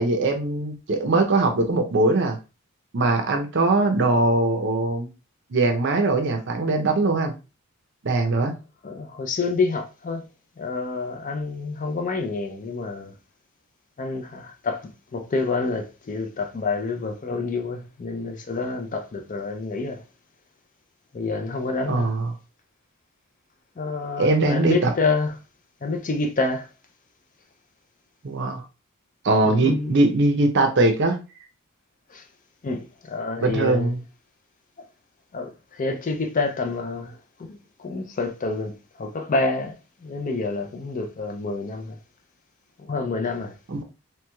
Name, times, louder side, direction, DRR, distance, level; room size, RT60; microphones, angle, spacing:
voice 1, 0.0-2.4 2.9-5.1 5.5-7.3 8.0-8.5 21.9-22.3 24.2-24.9 28.2-28.6 29.2-31.2 33.4-34.0 43.7-43.8, right 2 dB, 50° right, 0.5 m, -21 dB
voice 2, 8.8-10.3 10.6-13.1 14.0-20.0 21.1-22.1 23.8-25.3 25.8-26.7 29.4-30.0 32.1-32.3 32.6-33.9 35.3-42.0 42.8-43.6, left 3 dB, 35° left, 0.4 m, -28 dB
3.1 x 3.0 x 2.2 m
head